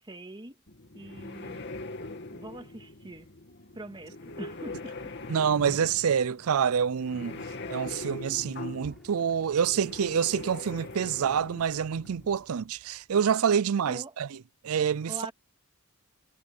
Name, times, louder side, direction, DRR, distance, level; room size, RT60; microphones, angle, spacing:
voice 1, 0.0-0.6 0.9-1.7 2.2-3.3 3.7-5.3 13.9-14.2 15.1-15.3, right 1 dB, 20° right, 2.0 m, -43 dB
sound 1, 0.7-12.4, left 2 dB, 55° left, 2.4 m, -42 dB
voice 2, 5.3-7.4 7.7-14.3 14.6-15.1, right 7 dB, 70° right, 0.4 m, -27 dB
sound 2, 7.9-13.3, equal, ahead, 7.3 m, -59 dB
sound 3, 8.8-9.2 9.8-11.2, right 1 dB, 45° right, 5.8 m, -56 dB
head